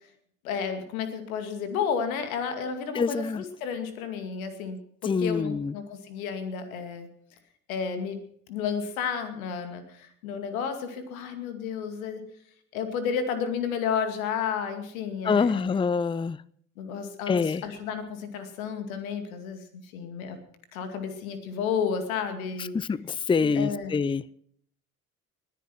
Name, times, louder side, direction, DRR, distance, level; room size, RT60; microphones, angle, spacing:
voice 1, 0.4-7.1 7.7-8.2 8.5-12.2 12.7-15.8 16.8-20.4 20.7-22.7 23.5-23.9, left 6 dB, 75° left, 8 dB, 2.4 m, -32 dB
voice 2, 2.9-3.4 5.0-5.7 15.2-16.4 17.3-17.6 22.7-24.2, left 5 dB, 15° left, 23 dB, 0.5 m, -25 dB
20.5 x 10.0 x 6.1 m, 0.65 s
figure-of-eight pair, 55°, 42 cm